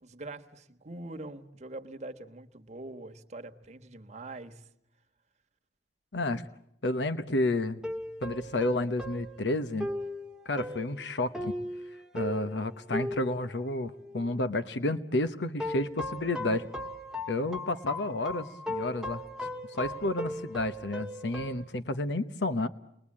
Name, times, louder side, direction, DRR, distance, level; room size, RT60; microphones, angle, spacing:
voice 1, 0.0-4.7, right 2 dB, 40° right, 1.4 m, -43 dB
voice 2, 6.1-6.4 6.8-7.8 8.2-9.9 10.4-11.5 12.1-16.7 17.3-19.2 19.7-22.7, left 2 dB, 90° left, 1.0 m, -31 dB
sound 1, 7.8-14.5 15.6-21.6, left 1 dB, 5° right, 1.3 m, -38 dB
30.0 x 21.5 x 8.6 m
head